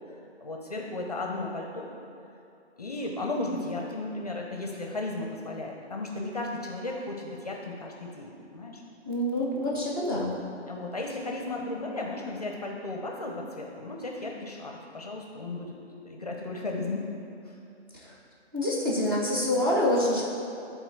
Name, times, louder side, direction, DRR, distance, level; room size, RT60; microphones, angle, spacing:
voice 1, 0.4-1.9 2.8-8.8 10.6-17.1 17.5-17.6, left 2 dB, 35° left, 0 dB, 0.6 m, -35 dB
voice 2, 9.1-10.4 18.0-18.1 18.5-20.2, left 1 dB, 20° right, -6 dB, 0.7 m, -26 dB
10.5 x 3.8 x 4.5 m, 2.7 s
hypercardioid pair, 175°, 34 cm